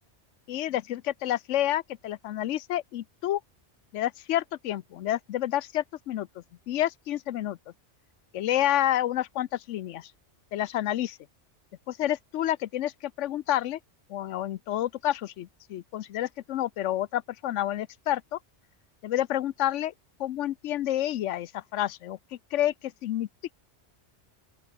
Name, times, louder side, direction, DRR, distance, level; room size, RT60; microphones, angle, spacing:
voice 1, 0.5-3.4 3.9-6.3 6.7-7.6 8.3-10.1 10.5-11.2 11.9-13.8 14.1-18.4 19.0-19.9 20.2-23.3, left 12 dB, 85° left, 1.0 m, -29 dB
open air
omnidirectional pair, 1.2 m